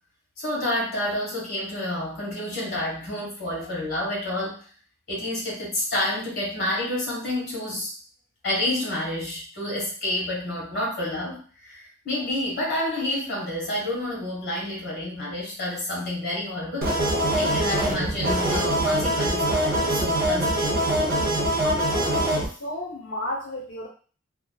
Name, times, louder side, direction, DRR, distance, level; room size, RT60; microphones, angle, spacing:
voice 1, 0.4-4.6 5.1-7.9 8.4-17.0 17.4-20.8, left 1 dB, 50° left, -3 dB, 1.5 m, -29 dB
sound 1, 16.8-22.5, right 1 dB, 45° right, 0.7 m, -23 dB
voice 2, 21.6-23.9, left 1 dB, 75° left, -6 dB, 0.7 m, -32 dB
2.9 x 2.4 x 2.2 m, 0.38 s
head